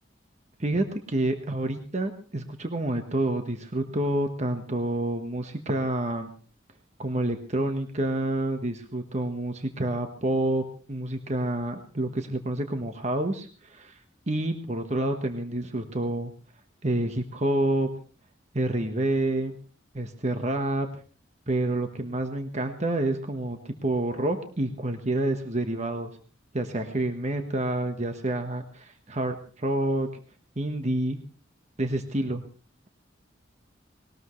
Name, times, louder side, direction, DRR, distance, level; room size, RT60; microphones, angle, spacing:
voice 1, 0.6-6.3 7.0-14.0 14.3-16.3 16.8-17.9 18.5-19.6 19.9-20.9 21.5-26.1 26.5-30.1 30.6-31.2 31.8-32.4, right 1 dB, 35° right, 6 dB, 1.3 m, -28 dB
20.0 x 18.5 x 3.2 m, 0.39 s
head